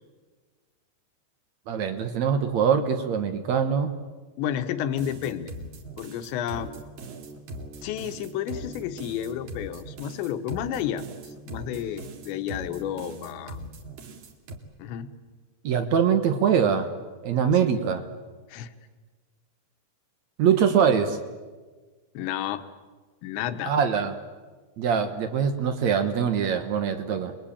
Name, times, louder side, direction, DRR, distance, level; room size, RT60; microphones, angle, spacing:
voice 1, 1.7-3.9 15.6-16.9 17.2-18.0 20.4-21.2 23.7-24.2 24.8-27.3, right 7 dB, 70° right, 8 dB, 1.6 m, -23 dB
voice 2, 4.4-5.5 6.0-6.7 7.8-11.1 11.5-13.6 14.8-15.1 18.5-18.7 22.2-22.6 23.2-23.7, left 10 dB, 80° left, 9 dB, 3.4 m, -31 dB
sound 1, 4.8-14.6, right 1 dB, 55° right, 3.7 m, -40 dB
28.5 x 22.0 x 8.7 m, 1.4 s
omnidirectional pair, 5.2 m